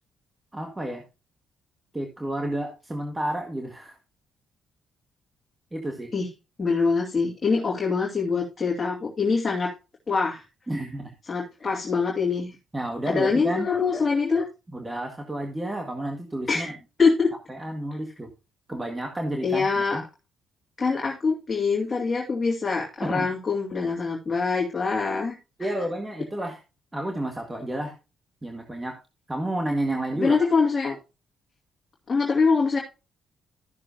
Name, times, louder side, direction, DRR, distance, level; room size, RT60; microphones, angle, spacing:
voice 1, 0.5-1.0 1.9-4.0 5.7-6.1 10.7-11.1 12.7-13.7 14.7-16.7 17.5-18.3 18.7-20.0 23.0-23.3 25.6-26.6 26.9-27.9 28.4-29.0 29.3-30.4, right 1 dB, 15° right, 3 dB, 1.6 m, -30 dB
voice 2, 6.6-9.7 10.1-10.4 11.3-12.6 13.1-14.4 16.5-16.7 17.0-17.3 19.4-20.0 20.8-25.4 30.2-31.0 32.1-32.8, left 4 dB, 30° left, -2 dB, 2.5 m, -24 dB
14.0 x 6.7 x 2.7 m, 0.28 s
cardioid pair, 90°, 0 cm